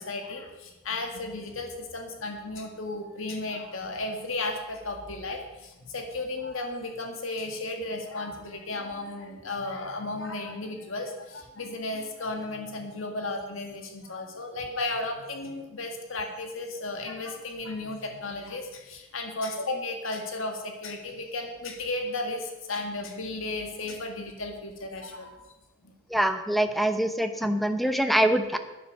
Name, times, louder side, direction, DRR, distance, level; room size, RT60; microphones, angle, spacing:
voice 1, 0.0-25.5 25.8-26.0, left 2 dB, 65° left, 4 dB, 1.9 m, -34 dB
voice 2, 26.1-28.6, right 1 dB, ahead, 8 dB, 0.8 m, -24 dB
11.5 x 10.0 x 6.6 m, 1.0 s
head